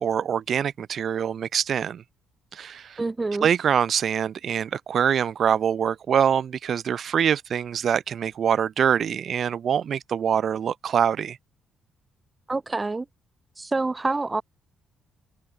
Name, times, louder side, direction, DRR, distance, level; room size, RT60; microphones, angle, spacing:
voice 1, 0.0-2.0 2.5-3.0 3.4-11.4, right 8 dB, 55° right, 1.7 m, -24 dB
voice 2, 3.0-3.5 12.5-13.0 13.6-14.4, right 3 dB, 20° right, 1.5 m, -27 dB
open air
cardioid pair, 90°, 0 cm